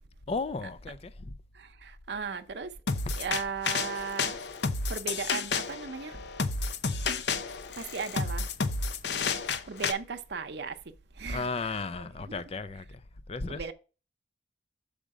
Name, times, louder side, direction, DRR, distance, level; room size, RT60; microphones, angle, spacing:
voice 1, 0.3-1.3 11.3-13.0 13.3-13.7, left 4 dB, 35° left, 0.4 m, -34 dB
voice 2, 1.5-2.8 3.2-4.4 4.9-6.3 7.8-8.5 9.7-12.4 13.5-13.7, right 5 dB, 70° right, 0.7 m, -37 dB
sound 1, 2.9-9.9, left 4 dB, 70° left, 0.7 m, -31 dB
6.4 x 5.1 x 4.8 m
head